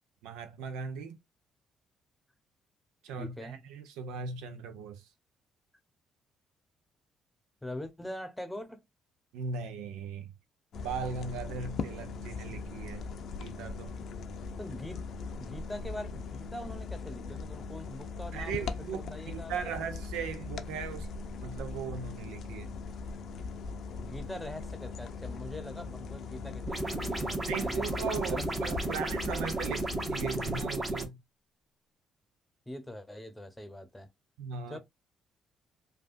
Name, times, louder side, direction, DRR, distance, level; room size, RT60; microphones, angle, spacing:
voice 1, 0.2-1.2 3.0-5.1 9.3-10.3 10.7-13.1 13.3-14.0 18.3-21.1 21.4-22.7 27.4-31.2 34.4-34.8, right 6 dB, 80° right, 0.5 m, -38 dB
voice 2, 3.2-3.7 7.6-8.8 14.6-19.7 24.0-29.0 32.7-34.1 34.7-34.8, left 1 dB, 10° left, 0.9 m, -43 dB
sound 1, 10.7-30.6, left 4 dB, 65° left, 0.5 m, -40 dB
sound 2, 26.7-31.1, right 2 dB, 25° right, 1.2 m, -33 dB
3.3 x 2.3 x 2.5 m
supercardioid pair, 55°, 0 cm